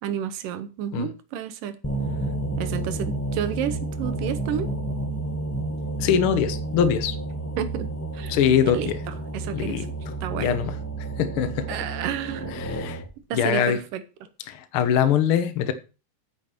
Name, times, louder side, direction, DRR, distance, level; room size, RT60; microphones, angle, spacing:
voice 1, 0.0-1.8 2.6-4.7 7.6-7.9 8.1-8.3 8.6-8.9 9.3-9.9 10.2-10.6 11.7-12.7 13.3-14.0, right 9 dB, 80° right, 2.7 m, -30 dB
sound 1, 1.8-13.1, right 2 dB, 10° left, 0.9 m, -31 dB
voice 2, 6.0-7.1 8.3-9.0 9.5-9.9 10.3-10.7 11.2-11.8 12.5-13.0 13.3-13.8 14.5-15.7, left 8 dB, 70° left, 1.3 m, -23 dB
9.0 x 7.2 x 6.0 m
omnidirectional pair, 3.8 m